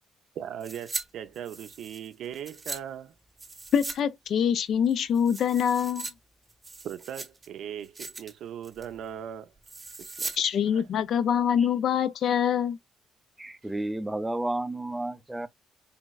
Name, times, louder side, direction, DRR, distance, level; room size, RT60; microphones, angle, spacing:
voice 1, 0.4-3.1 6.8-9.5 10.0-10.3 10.7-10.8, right 9 dB, 75° right, 0.4 m, -39 dB
sound 1, 0.6-1.0 1.3-2.8 3.4-4.0 4.3-4.4 4.8-6.1 6.5-7.5 7.8-8.3 8.6-8.9 9.6-10.4 10.7-10.8, right 3 dB, 25° right, 0.8 m, -39 dB
voice 2, 3.7-6.1 10.4-12.8, left 8 dB, 65° left, 0.4 m, -25 dB
voice 3, 13.4-15.5, right 1 dB, 10° right, 0.4 m, -32 dB
3.4 x 3.1 x 2.2 m
cardioid pair, 90°, 0 cm